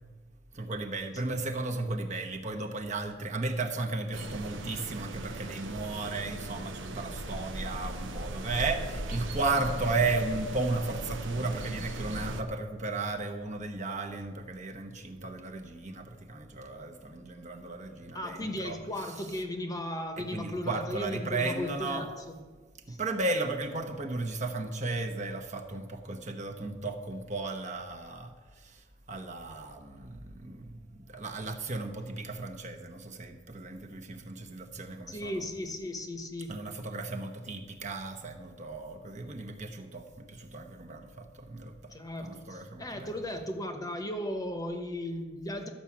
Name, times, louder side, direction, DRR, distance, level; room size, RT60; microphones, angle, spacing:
voice 1, 0.5-19.4 20.2-22.1 22.9-35.4 36.5-41.9 42.2-43.2, right 3 dB, 40° right, 4 dB, 1.1 m, -35 dB
sound 1, 4.1-12.4, right 1 dB, 85° right, 1.0 m, -38 dB
voice 2, 18.1-22.3 22.9-23.0 35.1-36.6 41.9-45.7, left 1 dB, 20° left, 6 dB, 1.0 m, -36 dB
12.5 x 5.9 x 8.5 m, 1.4 s
head